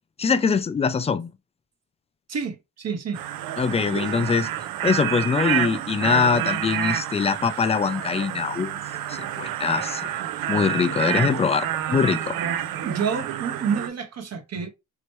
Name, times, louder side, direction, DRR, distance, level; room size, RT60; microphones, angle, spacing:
voice 1, 0.2-1.3 3.6-4.5 4.8-8.8 9.1-10.1 10.5-12.4, left 5 dB, 20° left, 0.3 m, -23 dB
voice 2, 2.3-3.2 11.1-11.2 12.8-14.7, right 6 dB, 50° right, 0.9 m, -29 dB
sound 1, 3.1-13.9, right 11 dB, 85° right, 0.5 m, -28 dB
3.2 x 2.9 x 3.0 m
cardioid pair, 105°, 34 cm